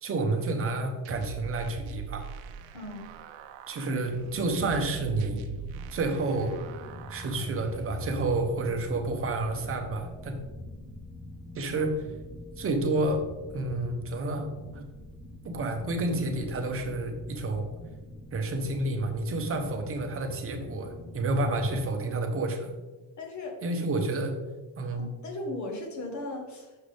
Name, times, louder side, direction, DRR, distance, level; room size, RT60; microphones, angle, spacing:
voice 1, 0.0-2.3 3.7-5.5 5.9-6.6 7.1-10.4 11.5-12.0 12.6-13.3 13.5-14.4 14.7-14.9 15.4-17.7 18.3-22.7 23.6-24.4 24.8-25.0, right 2 dB, 30° right, 4 dB, 0.9 m, -29 dB
sound 1, 1.0-8.0, right 6 dB, 70° right, 0.7 m, -42 dB
voice 2, 2.7-3.1 23.2-23.6 25.0-26.8, left 2 dB, 35° left, 3 dB, 1.3 m, -37 dB
sound 2, 4.1-21.8, left 1 dB, ahead, 0.4 m, -43 dB
6.6 x 5.6 x 3.4 m, 1.2 s
cardioid pair, 145°, 48 cm